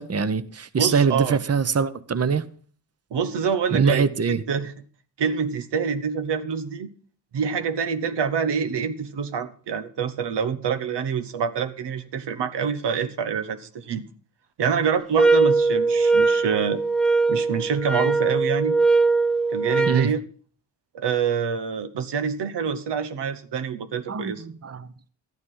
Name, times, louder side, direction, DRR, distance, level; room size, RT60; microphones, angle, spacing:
voice 1, 0.0-2.5 3.7-4.4 19.9-20.1 24.1-24.9, right 6 dB, 40° right, 0.9 m, -23 dB
voice 2, 0.7-1.4 3.1-4.7 5.2-6.9 7.3-14.0 14.6-16.8 17.3-18.8 19.5-20.2 20.9-24.4, right 6 dB, 90° right, 1.0 m, -26 dB
sound 1, 15.2-20.1, right 3 dB, ahead, 0.5 m, -20 dB
12.5 x 9.5 x 5.6 m
cardioid pair, 55°, 40 cm